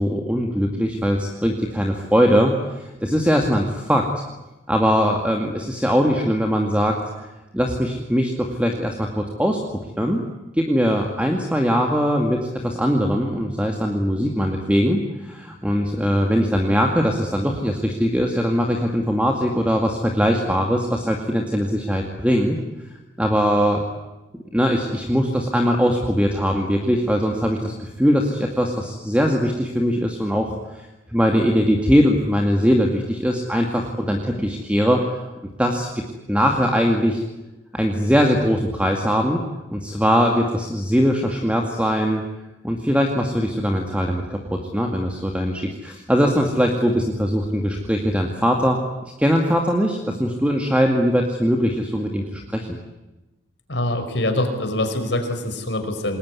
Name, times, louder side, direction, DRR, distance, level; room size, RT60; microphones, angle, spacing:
voice 1, 0.0-2.5 3.0-4.1 4.7-7.3 7.5-10.2 10.5-22.6 23.2-23.8 24.5-30.8 31.1-35.0 35.6-35.9 36.3-37.2 37.7-39.4 39.7-42.2 42.6-48.8 49.2-52.8, equal, 5° right, 2 dB, 2.2 m, -21 dB
voice 2, 53.7-56.2, left 1 dB, 75° left, 6 dB, 5.0 m, -24 dB
27.5 x 21.0 x 9.7 m, 1.0 s
head